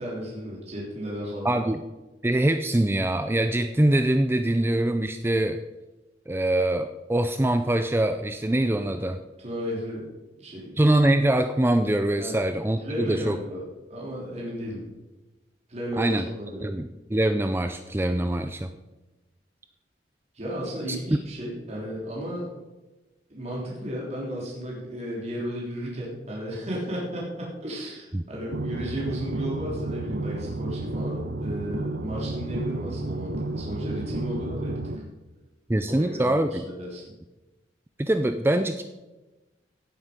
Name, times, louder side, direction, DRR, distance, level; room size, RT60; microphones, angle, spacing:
voice 1, 0.0-1.6 9.4-10.1 10.4-10.8 12.2-12.4 12.8-14.8 15.7-16.6 20.3-22.5 23.3-34.9 35.9-37.0, equal, 35° right, -4 dB, 3.3 m, -34 dB
voice 2, 1.4-1.8 2.2-5.6 6.3-9.2 10.8-13.4 16.0-16.3 16.6-18.7 28.1-28.2 35.7-36.6 38.0-38.8, right 1 dB, 10° right, 8 dB, 0.4 m, -23 dB
sound 1, 28.5-35.0, right 2 dB, 60° right, 0.8 m, -31 dB
16.5 x 7.9 x 5.2 m, 1.1 s
head